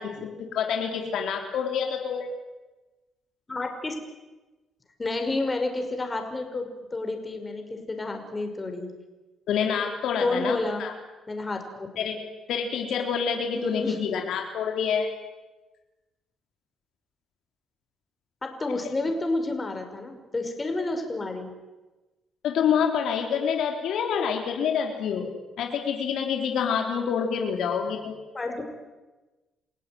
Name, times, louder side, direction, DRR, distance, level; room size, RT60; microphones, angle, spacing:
voice 1, 0.0-2.3 9.5-10.9 12.0-12.2 12.5-15.1 22.4-28.1, left 7 dB, 80° left, 3 dB, 3.7 m, -27 dB
voice 2, 3.5-3.9 5.0-8.9 10.2-10.9 11.3-11.9 13.6-14.0 18.4-21.5 28.3-28.6, left 2 dB, 25° left, 5 dB, 5.4 m, -30 dB
29.0 x 16.5 x 9.4 m, 1.1 s
cardioid pair, 90°, 0 cm